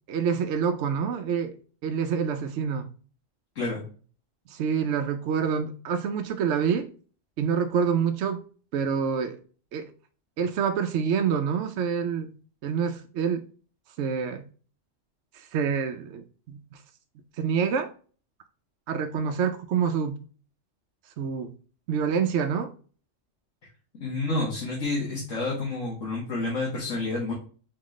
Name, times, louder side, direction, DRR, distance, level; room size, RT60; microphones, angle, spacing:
voice 1, 0.1-1.6 1.8-2.9 4.5-6.9 7.4-8.4 8.7-9.4 9.7-9.9 10.4-12.4 12.6-13.5 14.0-14.4 15.3-16.8 17.4-17.9 18.9-20.2 21.2-21.5 21.9-22.7, right 7 dB, 70° right, 0.9 m, -27 dB
voice 2, 24.0-27.3, left 2 dB, 75° left, 1.7 m, -29 dB
4.4 x 3.9 x 3.0 m
omnidirectional pair, 1.3 m